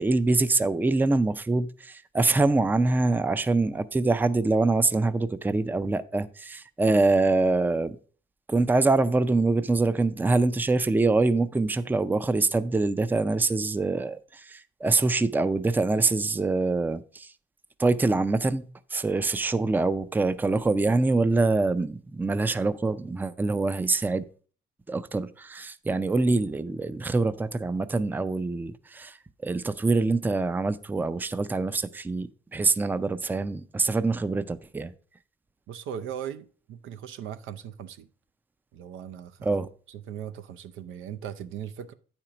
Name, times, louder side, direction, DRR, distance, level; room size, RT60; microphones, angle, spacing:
voice 1, 0.0-8.0 8.5-17.3 17.8-24.2 24.9-29.2 29.4-34.9 39.4-39.7, right 3 dB, 10° right, 0.4 m, -25 dB
voice 2, 35.7-38.1 38.7-41.9, right 9 dB, 80° right, 0.6 m, -39 dB
8.9 x 4.4 x 5.0 m
cardioid pair, 90°, 20 cm